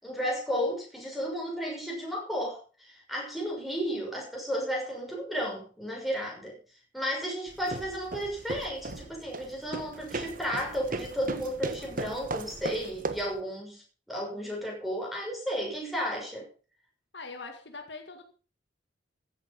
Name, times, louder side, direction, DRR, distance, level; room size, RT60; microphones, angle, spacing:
voice 1, 0.0-6.6 6.9-16.5, equal, ahead, -1 dB, 6.2 m, -33 dB
sound 1, 7.5-13.4, right 2 dB, 45° right, 1.2 m, -37 dB
voice 2, 17.1-18.2, left 3 dB, 60° left, 5 dB, 2.0 m, -42 dB
15.0 x 9.4 x 5.5 m, 0.39 s
head